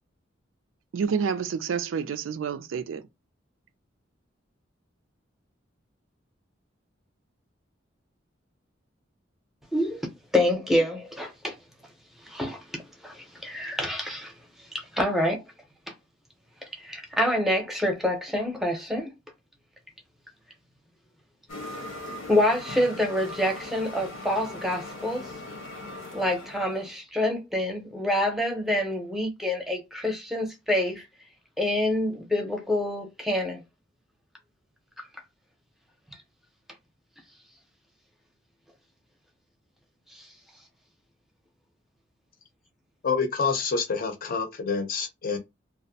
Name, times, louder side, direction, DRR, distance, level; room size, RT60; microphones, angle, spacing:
voice 1, 0.9-3.0, right 6 dB, 90° right, 0.4 m, -28 dB
voice 2, 10.3-11.5 12.2-14.3 14.7-15.4 16.7-19.1 22.3-25.3 26.1-31.0 31.6-33.6 40.1-40.3, left 1 dB, ahead, 0.6 m, -27 dB
sound 1, 21.5-27.0, left 2 dB, 90° left, 0.8 m, -40 dB
voice 3, 43.0-45.4, left 5 dB, 50° left, 0.6 m, -27 dB
2.5 x 2.0 x 2.7 m
head